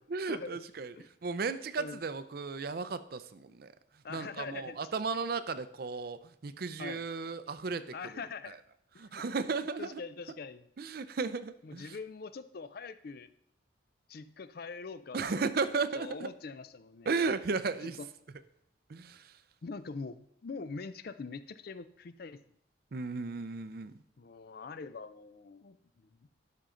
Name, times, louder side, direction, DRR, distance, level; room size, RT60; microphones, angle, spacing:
voice 1, 0.1-0.9 1.2-3.7 4.1-7.9 8.5-8.6 9.0-10.0 10.8-12.0 15.1-16.3 17.1-18.0 18.9-19.3 22.9-23.9, right 4 dB, 50° right, 13 dB, 0.5 m, -35 dB
voice 2, 4.0-4.8 6.8-7.0 7.9-8.6 8.9-9.2 9.8-10.6 11.6-13.3 14.1-15.4 15.9-17.1 18.0-18.1 19.6-22.4 24.2-26.1, left 4 dB, 50° left, 13 dB, 0.4 m, -43 dB
12.0 x 5.6 x 3.8 m, 0.71 s
head